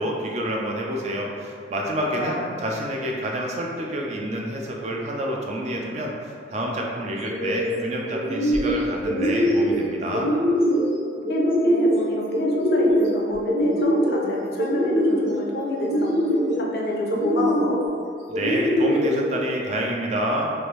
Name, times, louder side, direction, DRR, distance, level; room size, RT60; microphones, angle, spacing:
voice 1, 0.0-10.3 18.3-20.5, equal, 35° right, -1 dB, 0.3 m, -28 dB
voice 2, 2.0-2.5 11.3-16.2 16.5-17.8, left 1 dB, 55° left, -1 dB, 0.5 m, -29 dB
sound 1, 7.2-7.7 8.1-8.7 9.0-9.8 10.1-10.8 11.2-12.0 12.3-13.1 13.4-14.2 14.6-15.3 15.8-16.5 17.1-17.7 18.3-19.1, equal, 65° right, 1.0 m, -22 dB
3.2 x 2.5 x 3.0 m, 2.3 s
head